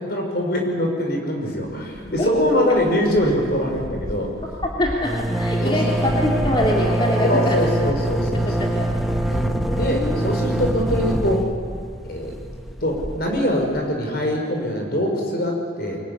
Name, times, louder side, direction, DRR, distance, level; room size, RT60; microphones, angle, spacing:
voice 1, 0.0-4.3 5.6-6.0 7.2-8.7 9.3-11.5 12.1-12.3 12.8-16.0, left 1 dB, 55° left, 2 dB, 5.9 m, -23 dB
Coho fog horn, 2.0-2.5 2.8-2.9 3.1-13.8, right 1 dB, ahead, 1.2 m, -25 dB
voice 2, 2.2-2.6 4.8-7.6 8.4-8.9 9.3-9.4 9.7-10.5, left 1 dB, 25° left, -3 dB, 2.8 m, -24 dB
24.0 x 23.0 x 9.9 m, 2.2 s
head